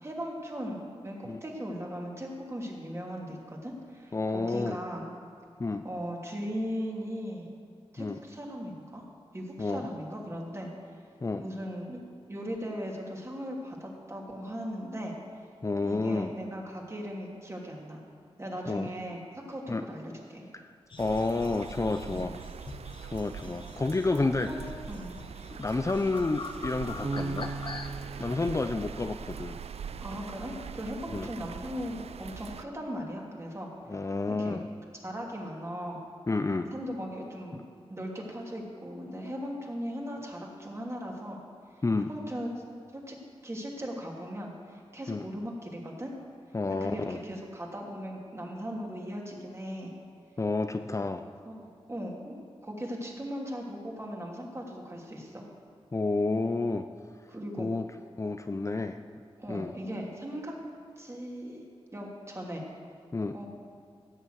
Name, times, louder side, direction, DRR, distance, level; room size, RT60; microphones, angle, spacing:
voice 1, 0.0-5.1 5.8-7.5 7.9-9.0 9.3-10.7 11.4-12.0 12.3-15.2 15.8-18.0 18.4-20.5 22.1-22.3 24.5-24.6 24.9-25.2 30.0-33.7 34.3-34.6 35.0-36.0 36.7-37.6 37.9-41.4 42.1-42.5 42.9-43.2 43.4-46.1 46.7-49.9 51.4-52.3 52.6-55.5 57.3-57.7 59.4-60.5 61.0-61.6 61.9-62.6 63.3-63.5, equal, 25° right, -1 dB, 2.9 m, -38 dB
voice 2, 4.1-4.8 5.6-5.8 8.0-8.2 9.6-9.9 11.2-11.4 15.6-16.3 18.7-18.9 19.7-19.8 20.5-20.7 21.0-22.3 23.1-24.5 25.6-27.5 28.2-29.6 31.1-31.3 33.9-34.6 36.3-36.7 37.5-37.6 41.8-42.1 45.1-45.2 46.5-47.2 50.4-51.2 55.9-56.8 57.6-57.8 58.2-59.0 59.5-59.7 63.1-63.4, left 3 dB, 30° left, 8 dB, 0.6 m, -30 dB
sound 1, 20.9-27.9, left 3 dB, 50° left, 1.0 m, -44 dB
sound 2, 21.0-32.6, right 7 dB, 80° right, 0.4 m, -42 dB
Bass guitar, 27.0-30.1, right 3 dB, 40° right, 1.4 m, -38 dB
16.0 x 7.2 x 8.1 m, 2.3 s
cardioid pair, 65°, 11 cm